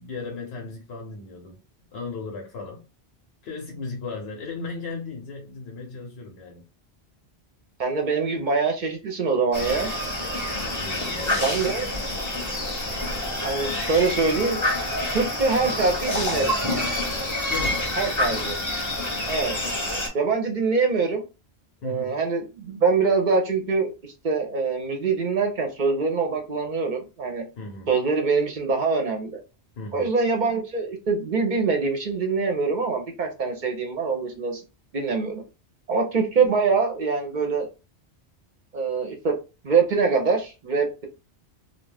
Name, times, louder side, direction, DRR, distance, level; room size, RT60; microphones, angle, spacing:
voice 1, 0.0-1.6 1.9-2.9 3.4-6.7 10.6-11.6 17.5-17.9 21.8-22.2 27.6-27.9 29.8-30.1, left 4 dB, 70° left, 0.9 m, -36 dB
voice 2, 7.8-9.9 11.4-11.9 13.4-14.6 15.1-16.5 18.0-18.6 19.3-19.5 20.1-21.2 21.8-23.9 24.2-27.4 27.9-29.4 29.9-34.6 34.9-35.4 35.9-37.7 38.7-39.3 39.6-41.1, right 4 dB, 55° right, 0.6 m, -24 dB
sound 1, 9.5-20.1, left 1 dB, 20° left, 0.7 m, -27 dB
2.3 x 2.2 x 3.3 m
omnidirectional pair, 1.1 m